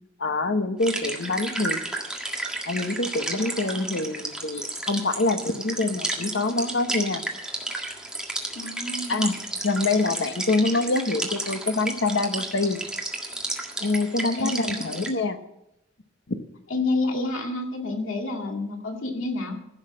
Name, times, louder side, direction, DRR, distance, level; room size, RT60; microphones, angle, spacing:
voice 1, 0.2-1.8 2.7-7.2 9.1-9.3 9.6-12.8 13.8-15.4 16.3-16.4, left 2 dB, 65° left, 9 dB, 1.1 m, -25 dB
sound 1, 0.8-15.1, right 1 dB, 5° right, 1.7 m, -32 dB
voice 2, 8.5-9.3 14.4-14.8 16.7-19.6, left 2 dB, 85° left, 2 dB, 2.2 m, -29 dB
15.0 x 6.5 x 7.5 m, 0.85 s
head